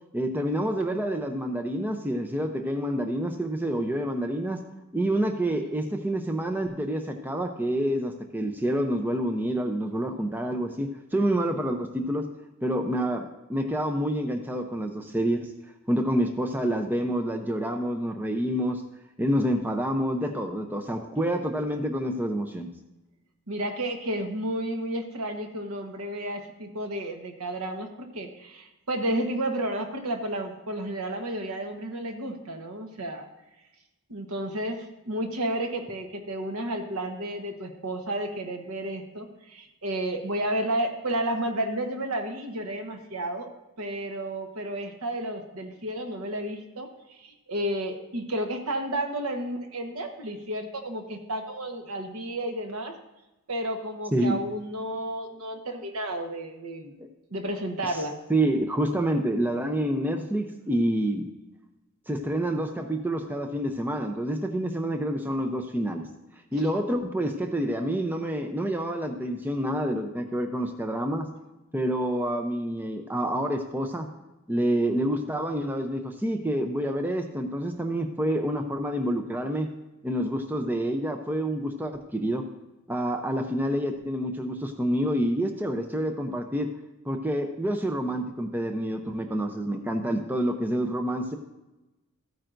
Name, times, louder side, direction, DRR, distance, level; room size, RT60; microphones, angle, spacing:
voice 1, 0.1-4.6 4.9-12.3 12.6-15.5 15.9-18.8 19.2-22.7 54.1-54.4 58.3-61.3 62.1-66.0 66.5-71.3 71.7-74.1 74.5-79.7 80.0-82.4 82.9-86.7 87.0-91.4, right 1 dB, 10° right, 4 dB, 0.5 m, -28 dB
voice 2, 23.5-33.3 34.1-43.5 43.8-46.9 47.2-52.9 53.5-56.9 57.3-58.2, right 1 dB, 75° right, 4 dB, 1.2 m, -32 dB
14.0 x 8.9 x 2.6 m, 1.0 s
head